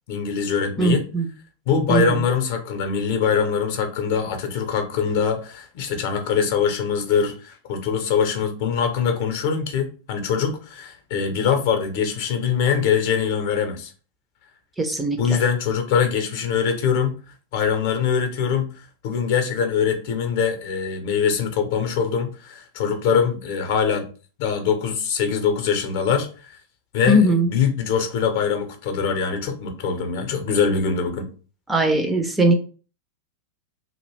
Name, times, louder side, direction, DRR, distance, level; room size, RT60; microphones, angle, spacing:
voice 1, 0.1-1.1 1.7-13.9 15.2-17.1 17.5-18.7 19.0-24.1 24.4-26.5 26.9-31.3, left 6 dB, 50° left, 5 dB, 0.6 m, -23 dB
voice 2, 0.8-1.3 1.9-2.2 14.8-15.4 27.1-27.5 31.7-32.5, right 1 dB, 10° right, 5 dB, 0.4 m, -19 dB
2.3 x 2.0 x 3.1 m, 0.37 s
figure-of-eight pair, 90°, 0 cm